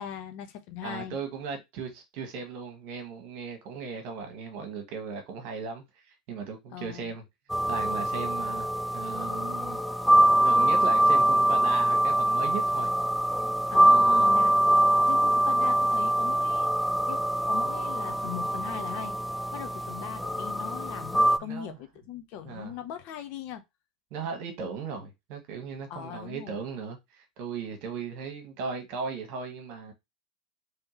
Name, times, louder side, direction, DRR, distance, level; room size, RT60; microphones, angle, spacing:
voice 1, 0.0-1.2 6.7-7.1 13.7-14.5 15.1-17.2 17.5-19.2 19.5-23.6 25.9-26.6, left 9 dB, 50° left, 0.8 m, -40 dB
voice 2, 0.8-5.8 6.3-7.2 7.7-8.7 8.9-9.8 10.4-12.9 13.7-14.3 21.4-21.8 22.4-22.7 24.1-29.9, right 5 dB, 50° right, 1.4 m, -37 dB
sound 1, 7.5-21.4, right 1 dB, ahead, 0.4 m, -24 dB
3.5 x 3.2 x 3.1 m
hypercardioid pair, 85°, 3 cm